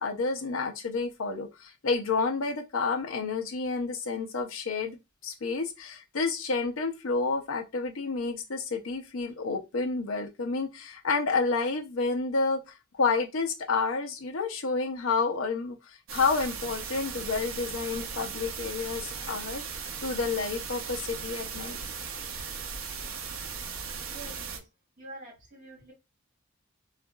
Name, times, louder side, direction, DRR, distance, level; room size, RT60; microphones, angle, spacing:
voice 1, 0.0-5.0 5.2-12.6 12.9-19.6 20.0-21.8, left 4 dB, 75° left, 0.6 m, -30 dB
sound 1, 16.1-24.6, right 6 dB, 75° right, 0.6 m, -37 dB
voice 2, 24.1-24.7 25.0-25.9, right 2 dB, 40° right, 1.5 m, -46 dB
2.8 x 2.4 x 2.3 m
head